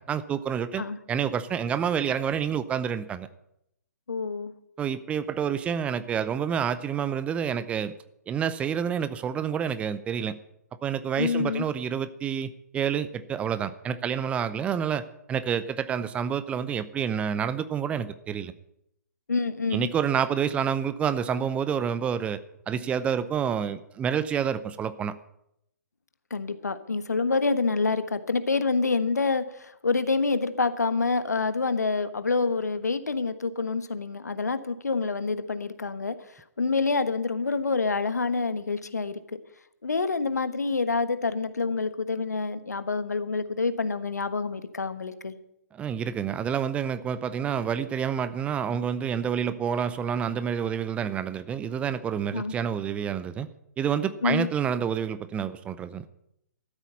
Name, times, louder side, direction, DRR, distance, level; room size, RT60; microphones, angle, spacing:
voice 1, 0.0-3.3 4.8-7.9 8.3-10.3 10.8-18.5 19.7-22.4 22.7-25.1 45.7-53.5 53.8-56.1, right 8 dB, 15° right, 15 dB, 0.6 m, -28 dB
voice 2, 4.1-4.5 11.2-11.6 19.3-19.9 26.3-39.2 39.8-45.4 52.3-52.5 54.2-54.5, left 4 dB, 75° left, 13 dB, 1.2 m, -27 dB
13.5 x 8.2 x 9.5 m, 0.79 s
figure-of-eight pair, 125°, 9 cm